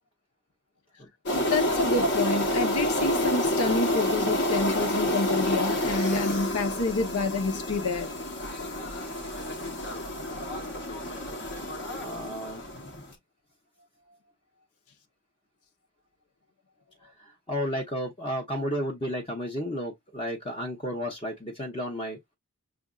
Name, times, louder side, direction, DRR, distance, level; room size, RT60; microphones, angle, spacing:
voice 1, 1.3-8.1, left 3 dB, 90° left, 0.9 m, -28 dB
sound 1, 1.3-13.0, left 1 dB, 55° left, 1.1 m, -29 dB
voice 2, 12.0-13.0 17.5-22.4, equal, 25° left, 0.8 m, -33 dB
6.0 x 2.5 x 2.4 m
head